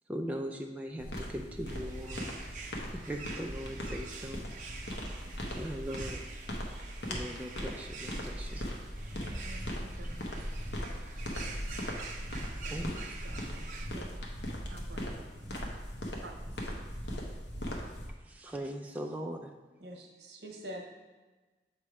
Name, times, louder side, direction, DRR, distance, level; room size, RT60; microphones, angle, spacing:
voice 1, 0.1-2.3 3.0-4.5 5.6-6.2 7.1-8.6 11.7-11.8 12.7-12.9 18.3-19.5, equal, 10° right, 1 dB, 0.3 m, -39 dB
sound 1, 1.0-18.1, equal, 80° left, 1.0 m, -39 dB
sound 2, 1.7-13.9, right 4 dB, 45° right, 0.7 m, -47 dB
voice 2, 9.2-10.4 10.8-11.7 12.5-12.9 13.2-14.1 14.7-15.7 16.2-16.7, right 3 dB, 85° right, 3 dB, 0.6 m, -52 dB
voice 3, 19.8-20.9, equal, 65° right, 1 dB, 1.1 m, -44 dB
7.1 x 3.2 x 4.7 m, 1.2 s
head